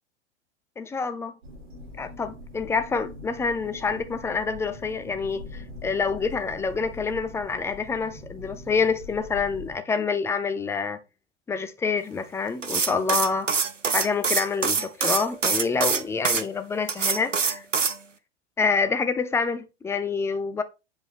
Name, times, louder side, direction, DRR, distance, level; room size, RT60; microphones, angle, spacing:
voice 1, 0.8-1.3 2.0-11.0 11.5-13.5 13.9-17.6 18.6-20.6, left 5 dB, 5° left, 0.5 m, -27 dB
sound 1, 1.4-9.8, left 2 dB, 60° right, 4.4 m, -42 dB
sound 2, 12.6-16.4 16.9-18.0, right 5 dB, 90° right, 0.8 m, -24 dB
7.8 x 5.3 x 3.5 m
figure-of-eight pair, 100°, 36 cm